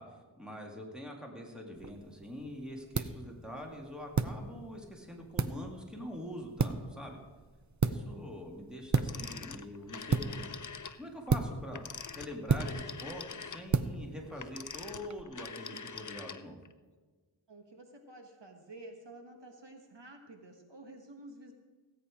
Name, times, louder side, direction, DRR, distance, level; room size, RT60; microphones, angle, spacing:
voice 1, 0.0-7.2 7.8-10.5 11.0-16.6, equal, ahead, 0 dB, 2.1 m, -44 dB
sound 1, 1.7-15.2, right 4 dB, 35° right, 0.6 m, -35 dB
Telephone, 8.9-11.0 11.7-16.7, left 5 dB, 40° left, 0.6 m, -44 dB
voice 2, 17.5-21.5, right 2 dB, 60° right, 3 dB, 1.4 m, -51 dB
16.5 x 8.6 x 4.9 m, 1.4 s
wide cardioid pair, 50°, 49 cm